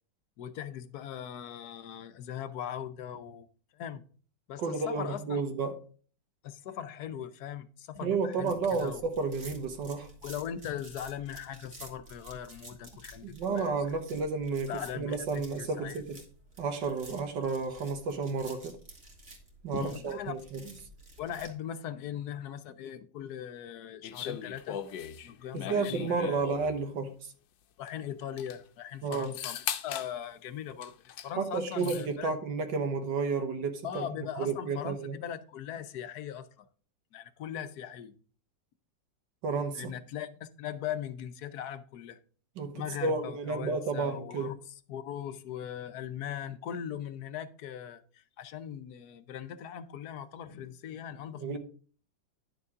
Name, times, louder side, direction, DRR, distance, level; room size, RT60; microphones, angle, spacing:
voice 1, 0.4-3.5 3.7-4.0 4.5-5.4 6.4-9.0 10.2-13.8 14.7-16.0 19.7-20.3 21.2-24.8 25.2-26.4 27.8-30.9 31.2-32.3 33.8-36.6 37.1-38.1 39.7-42.2 42.7-44.6 44.9-51.6, left 9 dB, 65° left, 1.2 m, -40 dB
voice 2, 4.6-5.8 8.0-10.1 13.2-16.2 16.6-18.8 19.6-20.6 25.5-27.3 29.0-29.3 31.4-34.1 34.4-35.2 39.4-39.9 42.6-44.6 51.4-51.6, right 4 dB, 75° right, 1.7 m, -32 dB
sound 1, 8.4-21.5, right 2 dB, 40° right, 2.1 m, -52 dB
sound 2, 24.0-26.8 27.9-28.0 28.2-28.6 29.1-30.1 30.8-31.3 31.6-32.1, left 9 dB, 80° left, 1.4 m, -39 dB
10.5 x 6.7 x 3.6 m
omnidirectional pair, 2.0 m